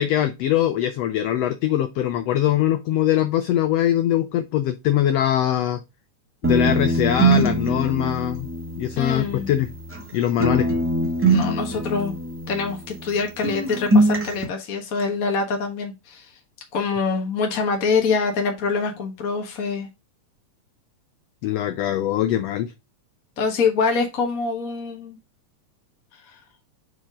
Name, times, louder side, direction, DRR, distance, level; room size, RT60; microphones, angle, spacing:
voice 1, 0.0-5.8 6.4-8.5 8.8-9.7 10.1-10.7 21.4-22.7, left 11 dB, 80° left, 10 dB, 1.4 m, -22 dB
sound 1, 6.4-10.1 10.4-13.2 13.4-14.4, right 2 dB, 10° right, 0.7 m, -22 dB
voice 2, 9.0-9.5 11.3-12.1 12.5-16.4 16.7-19.9 23.4-25.2 26.1-26.4, left 4 dB, 50° left, 3 dB, 1.0 m, -25 dB
6.3 x 4.8 x 3.6 m, 0.24 s
omnidirectional pair, 3.5 m